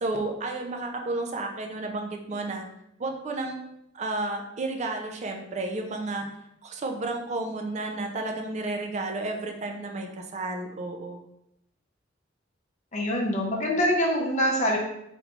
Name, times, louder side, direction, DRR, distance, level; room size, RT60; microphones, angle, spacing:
voice 1, 0.0-2.6 3.0-3.6 3.9-6.3 6.6-11.3, right 2 dB, 40° right, 3 dB, 0.4 m, -32 dB
voice 2, 12.9-14.8, equal, 40° left, -1 dB, 0.6 m, -24 dB
3.5 x 3.0 x 2.4 m, 0.79 s
head